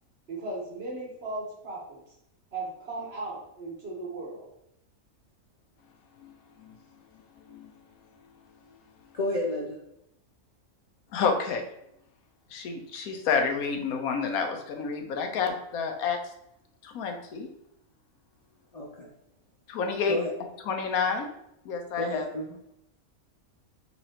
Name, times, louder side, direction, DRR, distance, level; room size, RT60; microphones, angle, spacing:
voice 1, 0.3-2.0 2.5-4.5, right 2 dB, 45° right, -3 dB, 1.4 m, -37 dB
voice 2, 9.1-9.8 18.7-19.1 20.1-20.3 22.0-22.6, left 1 dB, 65° left, -3 dB, 0.3 m, -31 dB
voice 3, 11.1-11.6 12.5-16.2 16.8-17.5 19.7-20.1 20.7-21.3 21.6-22.3, left 5 dB, 85° left, 4 dB, 1.2 m, -29 dB
5.7 x 3.1 x 2.8 m, 0.80 s
omnidirectional pair, 1.5 m